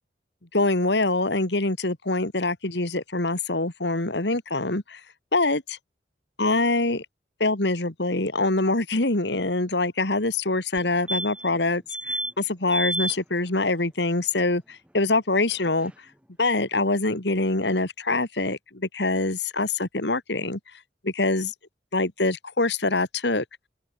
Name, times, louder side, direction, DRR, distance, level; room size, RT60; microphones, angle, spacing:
voice 1, 0.5-5.0 5.3-5.8 6.4-7.1 7.4-15.9 16.4-20.6 21.0-21.5 21.9-23.4, left 2 dB, 70° left, 2.3 m, -24 dB
sound 1, 10.8-10.9 11.1-11.6 11.9-12.3 12.7-13.1 15.5-15.6 15.8-15.9, right 1 dB, 5° right, 2.3 m, -29 dB
open air
head